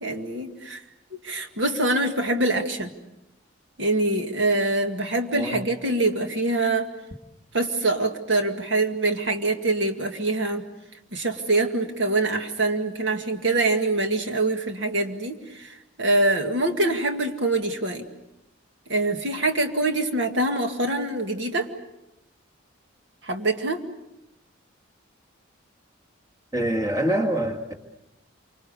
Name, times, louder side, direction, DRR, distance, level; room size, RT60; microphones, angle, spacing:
voice 1, 0.0-0.8 1.2-2.9 3.8-6.9 7.5-10.6 11.1-18.1 18.9-21.7 23.2-23.8, right 2 dB, 65° right, 5 dB, 2.0 m, -24 dB
voice 2, 26.5-27.7, right 1 dB, 15° right, 3 dB, 2.2 m, -25 dB
28.0 x 25.5 x 6.8 m, 0.90 s
head